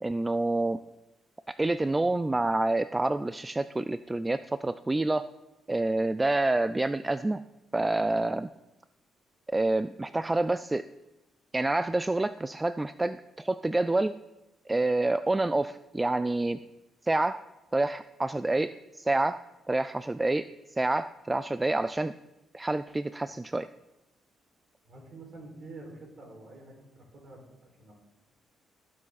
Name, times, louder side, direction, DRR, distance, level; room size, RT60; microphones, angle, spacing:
voice 1, 0.0-0.8 1.5-5.3 5.7-7.4 7.7-8.5 9.5-10.8 11.5-14.1 14.7-16.6 17.0-17.4 17.7-19.4 19.7-22.1 22.5-23.7, right 2 dB, 15° right, 13 dB, 0.3 m, -28 dB
voice 2, 24.8-27.9, right 2 dB, 50° right, -1 dB, 4.9 m, -48 dB
17.5 x 7.5 x 4.1 m, 0.99 s
cardioid pair, 90°, 0 cm